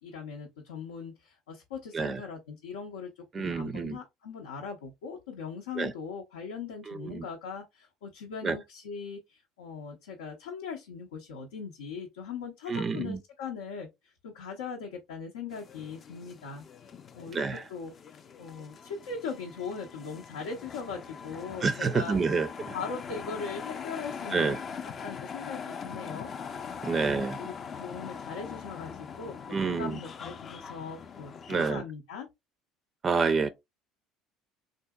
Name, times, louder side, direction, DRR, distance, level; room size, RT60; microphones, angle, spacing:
voice 1, 0.0-22.2 22.7-24.6 25.0-32.3, left 5 dB, 90° left, 0.6 m, -40 dB
voice 2, 3.3-4.0 5.8-5.9 6.9-7.3 8.4-8.6 12.7-13.2 17.3-17.6 21.6-22.7 24.3-24.6 26.8-27.4 29.5-30.0 31.5-31.8 33.0-33.5, right 5 dB, 35° right, 0.4 m, -28 dB
sound 1, 15.5-31.7, left 6 dB, 40° left, 0.4 m, -42 dB
3.6 x 2.6 x 2.2 m
hypercardioid pair, 75°, 0 cm